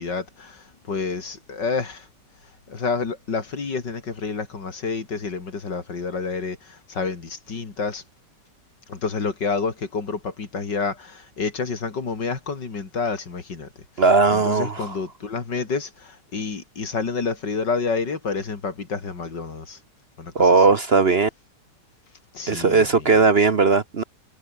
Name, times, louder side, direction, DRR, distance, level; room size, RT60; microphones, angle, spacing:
voice 1, 0.0-2.1 2.7-8.0 8.9-13.7 14.3-19.8 20.2-20.6 22.3-23.1, left 4 dB, 80° left, 3.7 m, -29 dB
voice 2, 14.0-15.0 20.3-21.3 22.5-24.0, right 4 dB, 40° right, 1.1 m, -18 dB
omnidirectional pair, 1.9 m